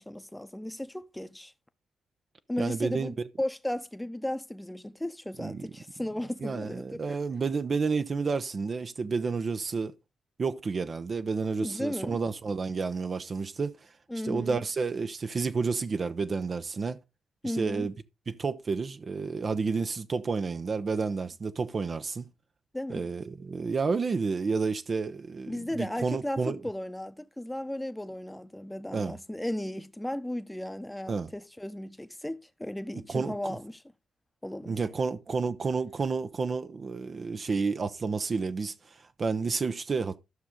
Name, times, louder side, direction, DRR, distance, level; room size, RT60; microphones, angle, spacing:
voice 1, 0.0-1.5 2.5-7.2 11.6-12.2 14.1-14.6 17.4-17.9 22.7-23.0 25.5-33.8 34.4-34.9, left 1 dB, 10° left, 0.9 m, -35 dB
voice 2, 2.6-3.3 5.4-5.7 6.4-9.9 10.4-13.8 14.2-17.0 17.4-17.9 18.3-22.2 22.9-26.6 28.9-29.1 31.1-31.3 33.1-33.6 34.7-40.2, right 4 dB, 45° right, 0.7 m, -30 dB
12.5 x 6.2 x 3.6 m
hypercardioid pair, 40°, 0 cm